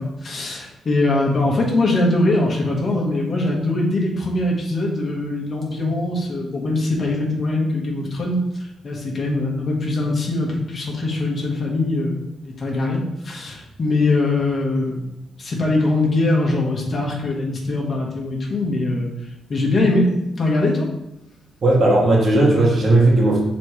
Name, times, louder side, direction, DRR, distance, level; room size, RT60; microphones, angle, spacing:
voice 1, 0.0-15.1 15.4-19.1 19.5-20.1 20.4-20.9, left 2 dB, 40° left, -2 dB, 1.4 m, -22 dB
voice 2, 21.6-23.4, right 2 dB, 45° right, -4 dB, 1.8 m, -15 dB
6.9 x 4.2 x 3.2 m, 0.92 s
cardioid pair, 115°, 0 cm